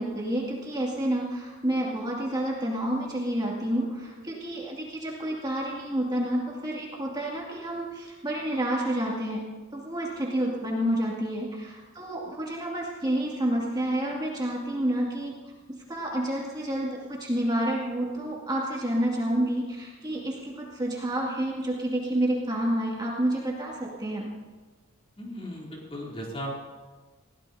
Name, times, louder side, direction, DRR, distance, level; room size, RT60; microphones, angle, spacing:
voice 1, 0.0-9.4 9.7-15.3 15.9-24.3, right 1 dB, 20° right, -4 dB, 2.5 m, -29 dB
voice 2, 25.2-26.5, equal, 30° left, -4 dB, 3.4 m, -36 dB
21.5 x 16.5 x 2.8 m, 1.3 s
head